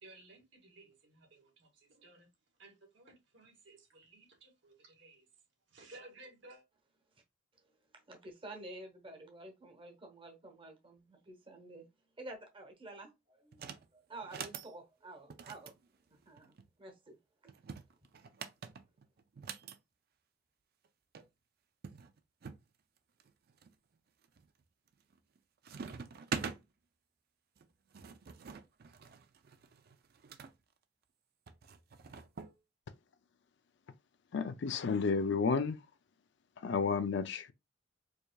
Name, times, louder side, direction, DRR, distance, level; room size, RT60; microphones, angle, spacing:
voice 1, 0.0-2.3 2.6-5.2 5.7-6.6, right 2 dB, 75° right, 1.7 m, -57 dB
voice 2, 7.5-11.9 12.2-15.7 16.1-17.5, right 2 dB, 30° right, 1.0 m, -51 dB
sound 1, 13.5-13.9 14.2-14.7 15.3-16.7 17.5-19.8 20.9-21.0 21.1-21.3 21.8-22.6 23.2-23.7 24.2-24.6 24.9-25.4 25.6-26.6 27.6-30.5 31.5-32.5, right 6 dB, 55° right, 0.5 m, -45 dB
voice 3, 34.3-35.8 36.6-37.5, left 5 dB, 65° left, 0.4 m, -31 dB
4.8 x 2.7 x 2.3 m
head